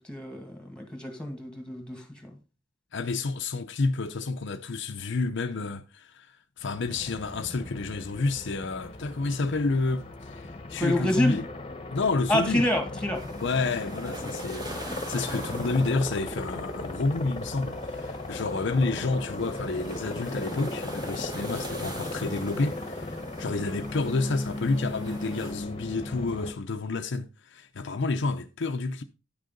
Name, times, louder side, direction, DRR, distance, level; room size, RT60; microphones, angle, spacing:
voice 1, 0.0-2.0 10.8-11.4 12.3-13.2, left 1 dB, 5° left, 2.0 m, -27 dB
voice 2, 2.9-11.4 11.9-12.7 13.4-29.0, left 3 dB, 60° left, 0.6 m, -29 dB
Aircraft, 6.6-26.5, left 2 dB, 30° left, 1.1 m, -37 dB
sound 1, 13.1-25.5, right 1 dB, 20° right, 1.6 m, -43 dB
9.7 x 6.5 x 3.9 m
head